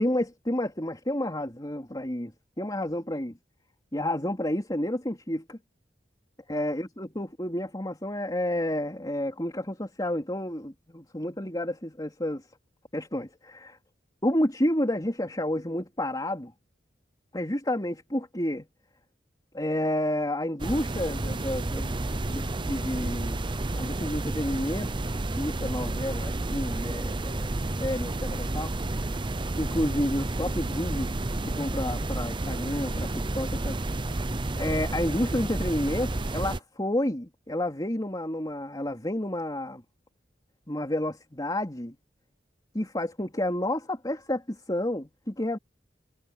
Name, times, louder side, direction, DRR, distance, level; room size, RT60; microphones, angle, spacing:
voice 1, 0.0-3.4 3.9-5.6 6.5-12.5 12.9-13.8 14.2-16.5 17.3-18.7 19.5-23.4 23.7-24.9 25.4-28.7 29.6-31.1 31.4-33.8 34.6-39.8 40.7-42.0 42.7-45.6, left 1 dB, 20° left, 3.7 m, -30 dB
sound 1, 20.6-36.6, right 2 dB, 25° right, 0.7 m, -31 dB
head